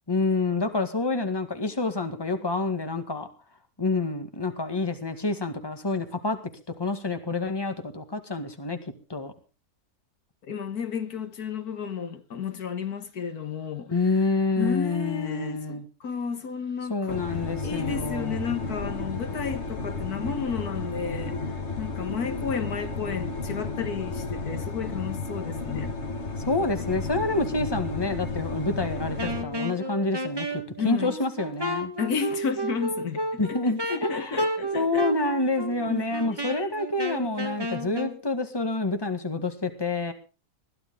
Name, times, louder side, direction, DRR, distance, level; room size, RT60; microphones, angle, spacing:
voice 1, 0.1-3.3 3.8-6.4 6.8-8.8 9.1-9.3 13.9-15.8 16.9-18.4 26.5-30.5 30.8-31.9 33.4-34.4 34.7-40.1, left 3 dB, 15° left, 1.9 m, -27 dB
voice 2, 10.5-14.0 14.6-17.2 17.6-21.4 21.8-26.0 30.8-31.1 32.0-33.4 33.9-35.1 35.9-36.7, left 6 dB, 85° left, 2.0 m, -32 dB
sound 1, 17.1-29.4, left 3 dB, 50° left, 2.1 m, -33 dB
Wind instrument woodwind instrument, 29.2-38.2, right 1 dB, 15° right, 1.5 m, -32 dB
21.0 x 12.5 x 3.8 m
omnidirectional pair, 1.6 m